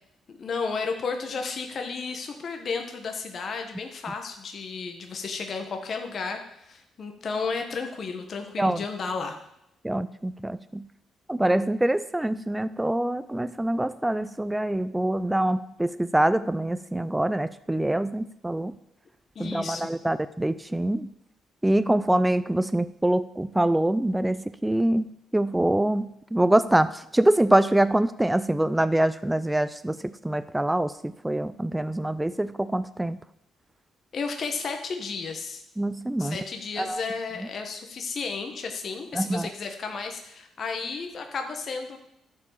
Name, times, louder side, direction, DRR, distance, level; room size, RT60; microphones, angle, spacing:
voice 1, 0.3-9.4 19.3-19.9 34.1-35.6 36.2-42.0, left 4 dB, 50° left, 4 dB, 1.2 m, -33 dB
voice 2, 9.8-10.8 11.3-18.7 19.4-21.1 21.6-25.0 25.3-33.2 35.8-36.4 36.8-37.0 39.1-39.5, right 1 dB, 10° right, 13 dB, 0.4 m, -25 dB
12.0 x 4.8 x 7.3 m, 0.82 s
cardioid pair, 80°, 0 cm